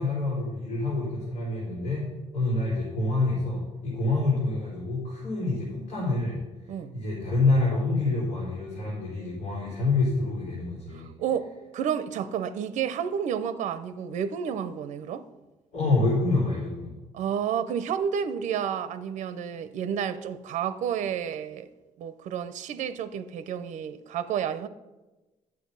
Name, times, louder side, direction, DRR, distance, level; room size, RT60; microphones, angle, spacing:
voice 1, 0.0-2.1 2.3-11.1 15.7-16.9, left 2 dB, 65° left, 4.3 m, -27 dB
voice 2, 10.9-15.3 17.1-21.7 22.0-24.7, right 8 dB, 80° right, 0.7 m, -30 dB
11.0 x 7.8 x 5.5 m
cardioid pair, 180°, 12 cm